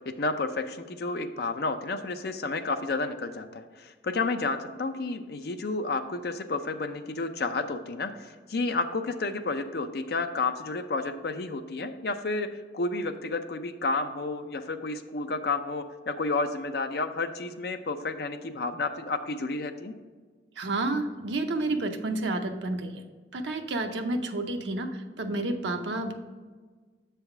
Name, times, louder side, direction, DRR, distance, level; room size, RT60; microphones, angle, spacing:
voice 1, 0.2-12.5 12.7-19.9, left 3 dB, 55° left, 8 dB, 0.5 m, -31 dB
voice 2, 20.6-23.0 23.3-26.1, right 2 dB, 75° right, 5 dB, 0.7 m, -30 dB
7.2 x 3.4 x 5.8 m, 1.4 s
head